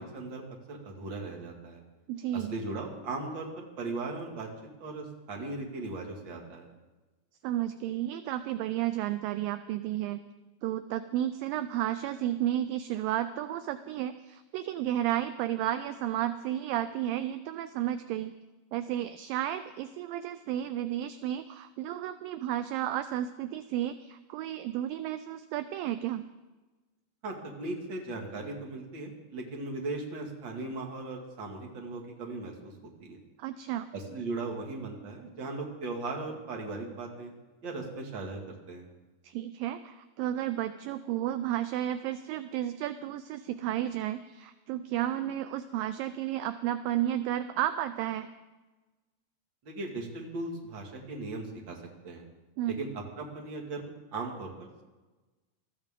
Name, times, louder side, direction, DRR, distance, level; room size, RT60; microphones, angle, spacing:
voice 1, 0.0-1.8 2.3-4.5 4.8-6.7 27.2-32.7 33.0-33.2 33.9-37.3 37.6-38.8 49.6-51.8 52.0-52.2 52.7-52.9 53.2-54.8, right 3 dB, 35° right, 0 dB, 2.3 m, -38 dB
voice 2, 2.1-2.5 7.4-10.2 10.6-18.3 18.7-26.2 33.4-33.9 39.2-48.3 52.6-52.8, right 12 dB, 80° right, 11 dB, 2.1 m, -32 dB
21.5 x 14.0 x 3.7 m, 1.2 s
omnidirectional pair, 4.3 m